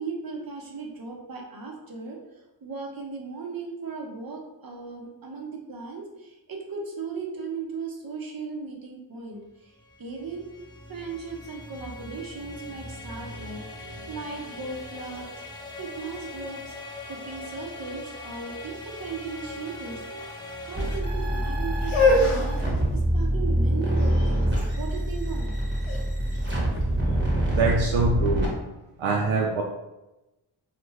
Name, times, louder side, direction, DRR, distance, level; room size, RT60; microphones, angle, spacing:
voice 1, 0.0-2.2 2.6-10.5 10.9-15.3 15.8-16.7 17.1-20.0 20.7-24.5 24.8-25.6 26.8-27.0 27.3-27.4, right 4 dB, 45° right, 1 dB, 0.8 m, -37 dB
sound 1, 9.6-21.0, left 2 dB, 10° left, 0.7 m, -41 dB
sound 2, 20.7-28.5, right 1 dB, 20° right, 1.1 m, -25 dB
sound 3, 21.8-27.7, left 2 dB, 80° left, 0.7 m, -27 dB
voice 2, 27.5-28.5 29.0-29.6, right 3 dB, 70° right, -1 dB, 0.5 m, -24 dB
2.4 x 2.3 x 3.2 m, 0.99 s
cardioid pair, 40°, 49 cm